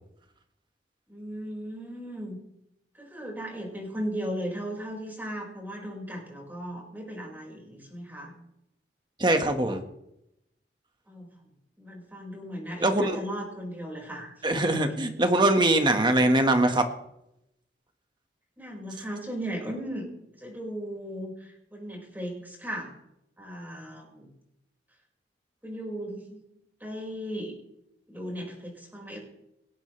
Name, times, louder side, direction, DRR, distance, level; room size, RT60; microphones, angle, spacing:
voice 1, 1.1-2.4 3.0-8.3 11.1-11.3 11.8-14.8 18.6-20.0 20.3-22.9 23.4-24.3 25.6-26.4 26.8-27.6 28.1-29.2, equal, 10° right, -1 dB, 5.6 m, -37 dB
voice 2, 9.2-9.8 12.8-13.2 14.4-16.9, right 1 dB, 25° right, 5 dB, 1.7 m, -22 dB
20.0 x 16.5 x 3.4 m, 0.82 s
head